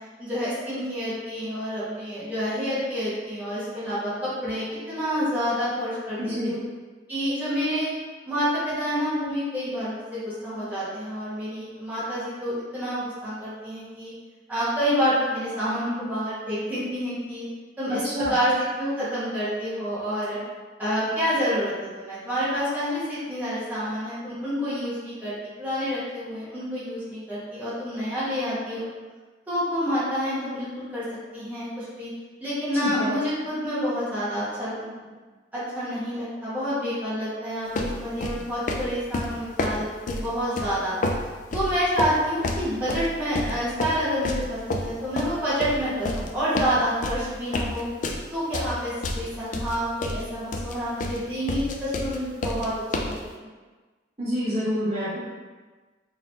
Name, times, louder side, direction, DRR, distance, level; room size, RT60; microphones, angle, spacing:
voice 1, 0.2-6.6 7.1-7.9 8.2-14.1 14.5-17.5 17.8-18.0 18.3-18.5 18.8-20.4 20.8-28.8 29.5-31.0 31.3-32.1 32.4-35.1 35.5-41.0 41.5-47.9 48.3-52.7 53.0-53.3, equal, 10° right, -12 dB, 1.2 m, -28 dB
voice 2, 6.2-6.5 17.9-18.4 32.8-33.1 54.2-55.2, equal, 35° right, -11 dB, 1.1 m, -27 dB
sound 1, 37.8-53.2, left 2 dB, 40° left, 0.3 m, -29 dB
3.9 x 3.0 x 2.8 m, 1.3 s
head